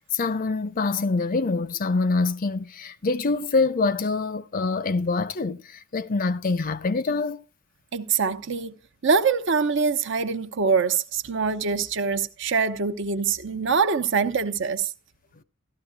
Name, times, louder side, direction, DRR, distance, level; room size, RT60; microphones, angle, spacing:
voice 1, 0.1-7.4, left 3 dB, 40° left, 0.5 m, -25 dB
voice 2, 7.9-8.7 9.0-14.9, right 5 dB, 65° right, 0.7 m, -24 dB
14.5 x 12.5 x 2.2 m
head